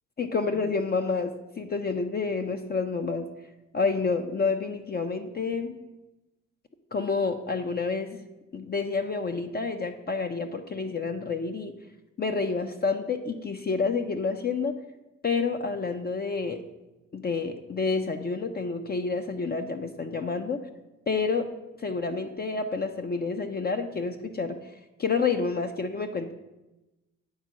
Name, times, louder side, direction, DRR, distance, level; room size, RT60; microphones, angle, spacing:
voice 1, 0.2-3.3 3.7-5.7 6.9-8.2 8.5-11.7 12.2-14.8 15.2-16.6 17.1-20.6 21.1-21.5 21.8-24.6 25.0-26.3, left 4 dB, 30° left, 6 dB, 0.6 m, -29 dB
8.9 x 3.6 x 6.1 m, 1.0 s
cardioid pair, 90°, 30 cm